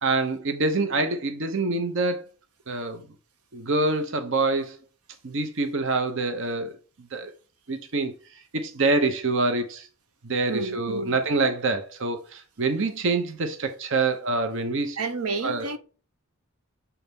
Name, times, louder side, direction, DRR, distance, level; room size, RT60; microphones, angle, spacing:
voice 1, 0.0-2.2 2.7-3.0 3.5-4.8 5.2-6.7 7.1-7.3 7.7-8.1 8.5-9.9 10.2-15.0 15.4-15.7, right 3 dB, 60° right, 0.8 m, -26 dB
voice 2, 10.5-11.2 15.0-15.8, right 4 dB, 85° right, 0.9 m, -30 dB
7.1 x 4.1 x 3.5 m
head